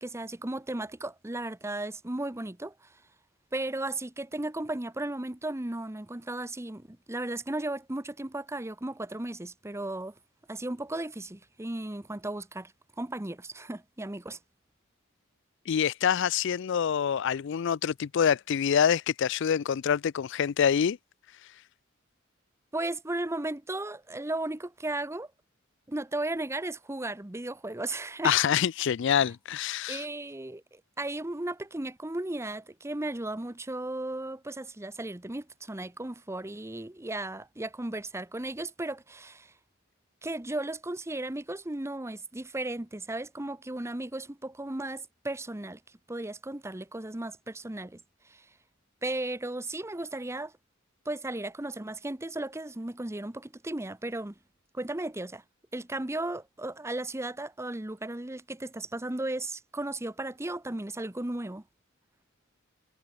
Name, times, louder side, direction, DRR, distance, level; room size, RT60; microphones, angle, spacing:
voice 1, 0.0-2.7 3.5-10.1 10.5-12.7 13.0-14.4 22.7-25.3 25.9-28.4 29.9-39.5 40.2-45.8 46.1-48.0 48.3-48.4 49.0-50.5 51.1-54.3 54.7-55.4 55.7-61.6, right 2 dB, 15° right, 0.9 m, -35 dB
voice 2, 15.7-21.0 28.2-30.0, left 8 dB, 60° left, 0.4 m, -26 dB
head